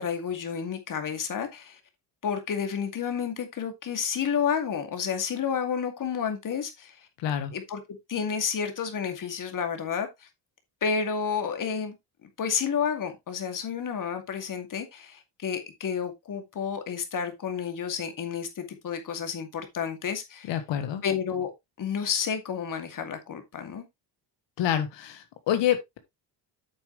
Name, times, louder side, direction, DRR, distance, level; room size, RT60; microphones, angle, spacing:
voice 1, 0.0-1.8 2.2-6.9 7.5-7.8 8.1-10.1 10.8-12.0 12.4-20.6 21.0-21.5 21.8-23.8, left 7 dB, 45° left, 2.4 m, -30 dB
voice 2, 7.2-7.5 20.5-21.0 24.6-26.0, left 10 dB, 80° left, 1.6 m, -27 dB
9.0 x 7.3 x 3.1 m
cardioid pair, 130°, 43 cm